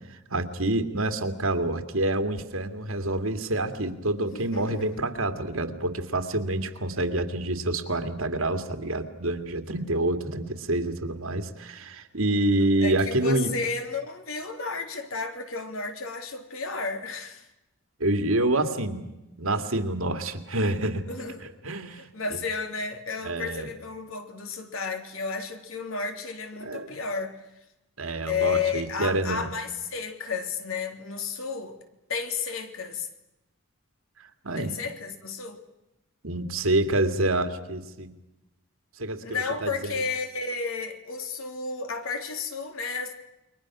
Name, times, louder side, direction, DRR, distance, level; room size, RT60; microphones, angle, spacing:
voice 1, 0.1-13.5 18.0-19.1 19.4-21.1 21.4-22.4 23.2-23.7 26.6-27.0 28.0-29.5 34.4-34.7 36.2-38.1 39.0-40.0, right 2 dB, 80° right, 2.4 m, -27 dB
voice 2, 4.3-5.2 12.8-17.5 21.1-21.4 21.9-27.4 28.3-31.8 32.1-33.1 34.5-35.6 39.2-43.1, left 5 dB, 75° left, 3.4 m, -32 dB
29.0 x 23.5 x 6.2 m
head